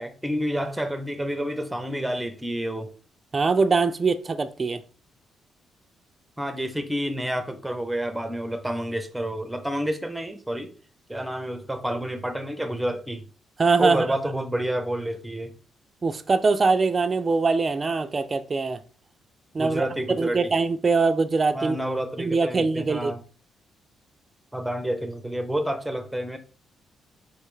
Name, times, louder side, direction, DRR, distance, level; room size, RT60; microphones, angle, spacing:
voice 1, 0.0-2.9 6.4-10.7 11.1-13.3 13.8-15.5 19.6-20.5 21.5-23.2 24.5-26.4, right 1 dB, 5° right, 0.8 m, -29 dB
voice 2, 3.3-4.8 13.6-14.1 16.0-18.8 19.5-19.8 20.2-21.8 22.2-23.1, right 4 dB, 30° right, 0.4 m, -22 dB
4.6 x 3.3 x 3.2 m
cardioid pair, 90°, 0 cm